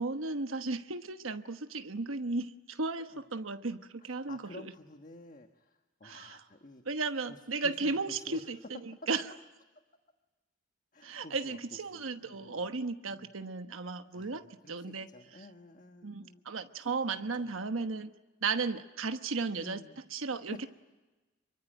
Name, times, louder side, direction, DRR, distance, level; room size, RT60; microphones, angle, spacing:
voice 1, 0.0-4.4 6.0-6.4 6.8-9.2 11.0-15.1 16.0-18.1 18.4-19.8 20.1-20.7, right 3 dB, 85° right, 8 dB, 1.2 m, -35 dB
voice 2, 4.0-6.8 7.3-8.4 10.9-12.6 13.1-13.3 14.1-16.4 16.8-16.9 17.1-17.5 19.6-20.0 20.5-20.6, left 2 dB, 40° left, 5 dB, 1.4 m, -52 dB
26.0 x 24.0 x 9.0 m, 1.2 s
head